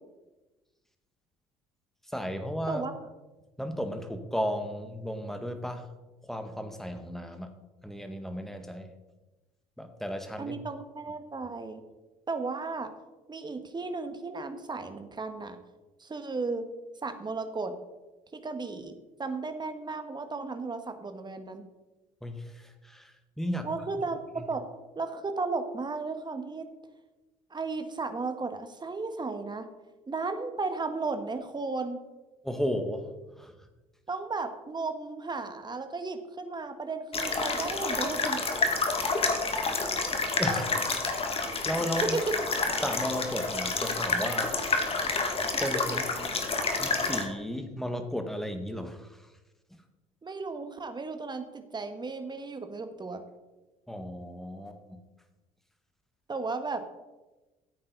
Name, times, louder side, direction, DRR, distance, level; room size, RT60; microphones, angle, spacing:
voice 1, 2.1-2.8 3.6-5.9 6.2-7.5 7.8-8.9 9.8-10.6 22.2-23.7 24.4-24.5 32.4-33.1 33.4-33.7 38.7-39.1 40.4-42.2 42.8-44.6 45.6-46.1 46.8-49.3 53.9-55.0, equal, ahead, 7 dB, 1.7 m, -35 dB
voice 2, 10.4-11.8 12.3-12.9 13.3-15.6 16.0-16.7 17.0-17.7 18.3-21.6 23.6-24.6 24.9-26.7 27.5-29.7 30.1-32.0 34.1-38.4 42.1-42.3 45.9-46.8 50.2-53.2 56.3-56.8, right 3 dB, 25° right, 8 dB, 1.6 m, -34 dB
sound 1, 37.1-47.2, left 3 dB, 35° left, 2.1 m, -29 dB
14.5 x 8.6 x 4.0 m, 1.1 s
hypercardioid pair, 60°, 18 cm